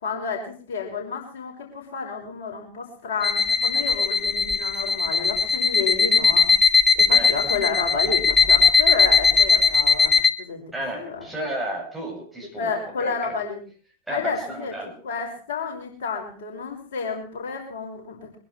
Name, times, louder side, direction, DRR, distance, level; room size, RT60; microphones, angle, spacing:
voice 1, 0.0-6.5 7.0-10.6 11.0-11.3 12.6-13.6 14.1-14.7 15.0-18.4, left 5 dB, 55° left, 0 dB, 5.5 m, -30 dB
song alarm, 3.2-10.3, left 5 dB, 10° left, 1.3 m, -19 dB
voice 2, 10.7-13.3 14.1-14.9, right 1 dB, 5° right, -2 dB, 7.1 m, -33 dB
23.5 x 11.0 x 4.6 m, 0.40 s
figure-of-eight pair, 90°, 0 cm